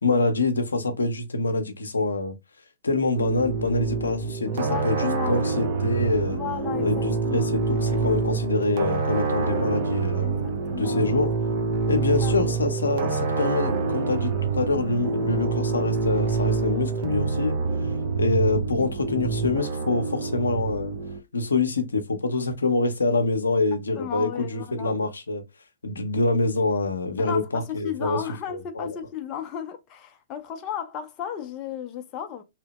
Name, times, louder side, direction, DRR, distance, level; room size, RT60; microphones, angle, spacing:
voice 1, 0.0-2.3 2.8-6.4 6.8-11.3 11.9-17.6 18.2-20.9 21.3-25.4 25.8-28.2 28.5-28.9, left 3 dB, 85° left, 0.6 m, -25 dB
sound 1, 3.1-21.2, right 4 dB, 50° right, 0.6 m, -26 dB
voice 2, 4.5-5.5 6.3-7.5 8.0-8.2 10.2-11.2 12.2-12.5 24.0-24.9 27.2-32.4, left 9 dB, 35° left, 0.5 m, -35 dB
2.8 x 2.0 x 2.9 m
hypercardioid pair, 115°, 0 cm